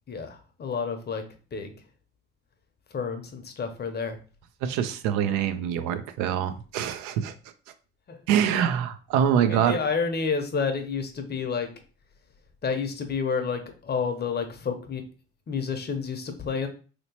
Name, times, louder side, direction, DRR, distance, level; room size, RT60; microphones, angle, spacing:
voice 1, 0.1-1.2 1.5-1.7 2.9-4.2 8.1-8.2 9.4-11.7 12.6-15.0 15.5-16.7, left 5 dB, 35° left, 6 dB, 0.7 m, -30 dB
voice 2, 4.6-7.3 8.3-9.8, right 9 dB, 75° right, 10 dB, 0.5 m, -25 dB
3.1 x 2.9 x 2.8 m, 0.37 s
hypercardioid pair, 65°, 30 cm